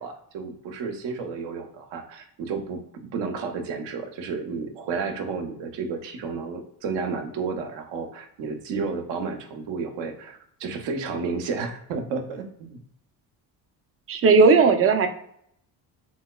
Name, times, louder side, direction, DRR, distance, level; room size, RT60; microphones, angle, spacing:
voice 1, 0.0-12.8, right 4 dB, 70° right, 5 dB, 0.7 m, -32 dB
voice 2, 14.1-15.1, right 4 dB, 30° right, 7 dB, 0.5 m, -16 dB
2.9 x 2.9 x 2.3 m, 0.69 s
supercardioid pair, 80°, 44 cm